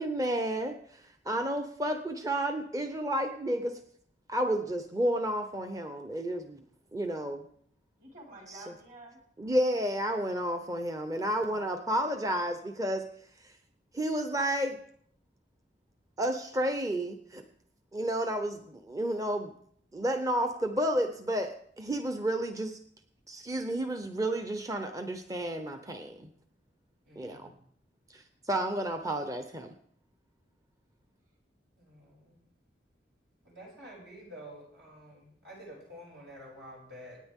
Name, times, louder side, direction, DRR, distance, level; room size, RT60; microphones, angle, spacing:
voice 1, 0.0-3.8 4.3-6.6 6.9-7.4 8.5-8.6 9.4-13.0 13.9-14.8 16.2-17.4 17.9-19.5 19.9-22.8 23.3-26.3 27.2-27.5 28.1-29.7, right 1 dB, 20° right, 6 dB, 0.7 m, -31 dB
voice 2, 8.0-9.2 11.4-12.2, right 2 dB, 50° right, -2 dB, 5.0 m, -51 dB
voice 3, 27.0-27.6 31.8-32.4 33.4-37.2, equal, 75° right, -3 dB, 6.9 m, -49 dB
25.5 x 9.7 x 3.6 m, 0.65 s
head